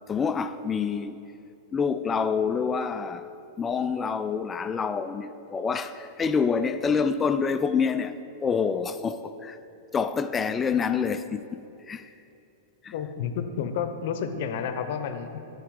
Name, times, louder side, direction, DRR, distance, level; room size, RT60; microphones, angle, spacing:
voice 1, 0.1-1.1 1.7-8.1 8.4-9.6 9.9-11.6 11.9-12.1 12.8-12.9, left 6 dB, 20° left, 0.3 m, -27 dB
voice 2, 12.9-15.4, left 7 dB, 60° left, 0.7 m, -30 dB
10.0 x 4.7 x 4.8 m
hypercardioid pair, 120°, 0 cm